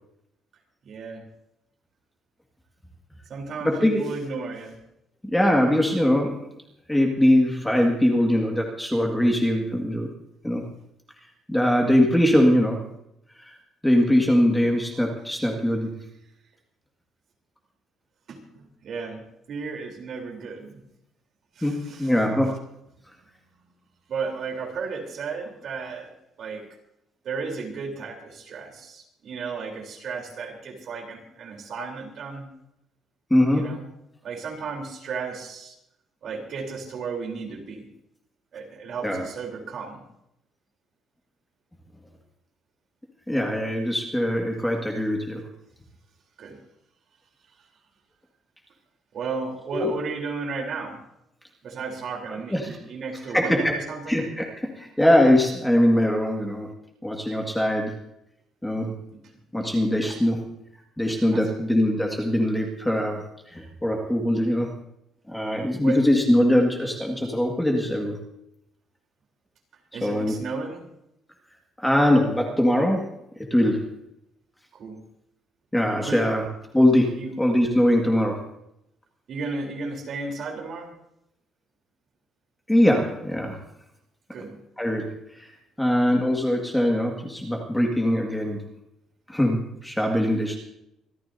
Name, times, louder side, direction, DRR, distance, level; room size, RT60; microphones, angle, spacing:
voice 1, 0.8-1.3 3.3-4.8 18.3-20.8 21.6-22.2 24.1-26.1 26.4-26.6 27.2-32.5 33.5-33.8 34.2-35.8 36.2-37.9 38.5-40.0 46.4-46.6 49.1-51.0 51.6-54.2 59.1-59.2 61.3-61.5 65.8-66.0 69.9-70.9 74.7-75.0 76.0-76.3 77.2-77.3 79.3-80.9 84.3-84.6, right 4 dB, 45° right, 1 dB, 3.6 m, -34 dB
voice 2, 3.6-4.0 5.2-6.4 6.9-10.1 10.4-10.7 11.5-12.9 13.4-13.5 13.8-15.9 21.6-22.6 33.3-33.7 39.0-39.2 43.3-45.4 49.7-49.9 52.5-52.8 53.3-53.8 54.1-56.7 57.0-58.0 58.6-59.0 59.5-60.5 61.0-64.7 65.3-68.2 70.0-70.3 71.8-73.1 73.5-73.9 75.7-76.4 76.7-78.5 82.7-83.6 84.8-85.5 85.8-88.6 89.3-90.6, left 1 dB, 5° left, 1 dB, 1.9 m, -22 dB
26.0 x 14.0 x 2.7 m, 0.80 s
cardioid pair, 165°, 0 cm